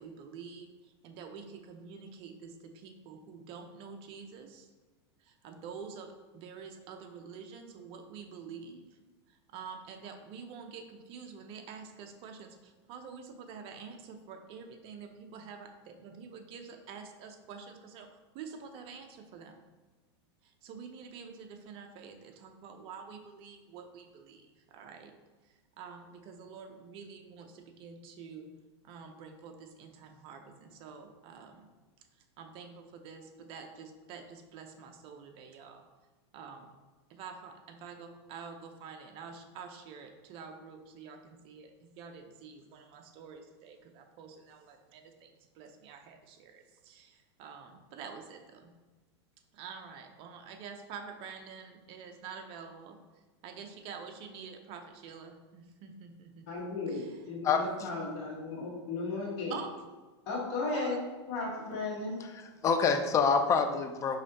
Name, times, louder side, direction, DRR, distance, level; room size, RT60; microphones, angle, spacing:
voice 1, 0.0-4.7 5.2-8.9 9.3-19.6 20.4-25.1 25.4-28.5 28.8-31.7 32.2-35.9 36.3-36.7 37.1-48.7 49.5-53.0 53.4-57.1 57.6-57.7 59.5-59.7 60.7-61.0, right 6 dB, 40° right, 6 dB, 0.6 m, -47 dB
voice 2, 56.5-59.6 60.3-61.0 61.3-62.2, left 3 dB, 55° left, -6 dB, 1.4 m, -35 dB
voice 3, 57.4-57.9 62.4-64.2, left 5 dB, 20° left, 6 dB, 0.4 m, -27 dB
4.8 x 3.1 x 2.9 m, 1.3 s
hypercardioid pair, 130°, 14 cm